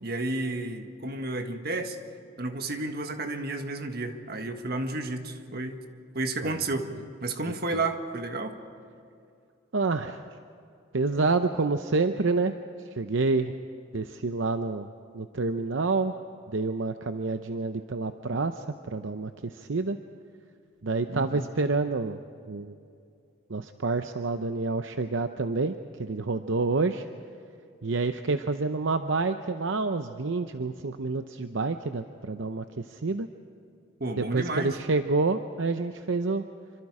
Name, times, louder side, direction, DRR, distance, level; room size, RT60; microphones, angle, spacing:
voice 1, 0.0-2.0 2.4-5.8 6.1-6.9 7.2-8.6 21.1-21.5 34.0-34.7, right 2 dB, 50° right, 6 dB, 1.6 m, -31 dB
voice 2, 9.7-10.2 10.9-12.5 12.9-13.5 13.9-16.1 16.5-20.0 20.8-22.2 22.5-22.7 23.5-27.1 27.8-33.3 34.1-36.4, right 3 dB, 70° right, 8 dB, 0.7 m, -28 dB
27.0 x 25.0 x 4.9 m, 2.5 s
head